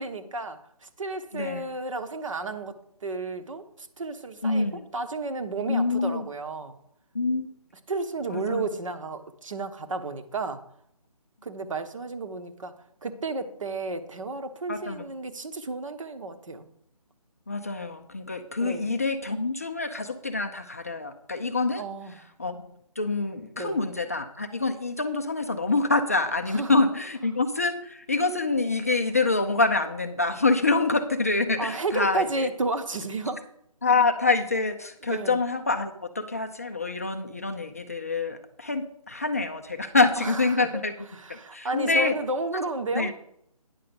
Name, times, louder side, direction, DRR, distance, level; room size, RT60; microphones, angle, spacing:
voice 1, 0.0-2.8 3.0-6.8 7.9-10.6 11.4-12.7 13.0-16.7 18.6-18.9 21.8-22.2 23.6-23.8 26.5-26.8 31.6-33.4 35.0-35.4 40.2-40.8 41.1-43.1, right 3 dB, 55° right, 8 dB, 1.1 m, -32 dB
voice 2, 1.3-1.6 4.4-4.8 5.7-6.3 7.1-7.5 8.3-8.7 14.7-15.0 17.5-21.8 22.4-32.5 33.8-40.9 41.3-42.2 42.9-43.1, left 3 dB, 25° left, 7 dB, 0.4 m, -26 dB
9.5 x 5.6 x 6.8 m, 0.72 s
figure-of-eight pair, 160°, 20 cm